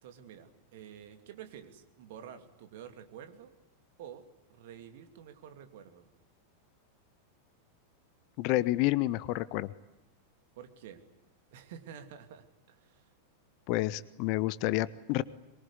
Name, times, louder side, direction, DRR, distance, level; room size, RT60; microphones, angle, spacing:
voice 1, 0.0-3.5 4.0-4.2 4.5-6.1 10.6-11.0 11.5-13.1, right 9 dB, 55° right, 8 dB, 2.8 m, -49 dB
voice 2, 8.4-9.7 13.7-15.2, left 17 dB, 45° left, 18 dB, 1.0 m, -29 dB
23.5 x 23.0 x 9.9 m, 0.99 s
figure-of-eight pair, 90°, 0 cm